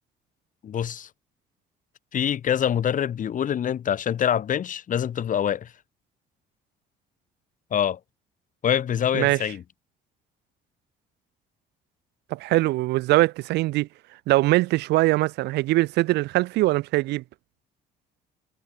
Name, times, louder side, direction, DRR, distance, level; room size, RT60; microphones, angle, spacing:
voice 1, 0.6-1.1 2.1-5.7 7.7-8.0 8.6-9.6, left 9 dB, 50° left, 6.6 m, -25 dB
voice 2, 9.1-9.5 12.3-13.9 14.3-17.2, right 18 dB, 85° right, 1.6 m, -22 dB
cardioid pair, 110°, 17 cm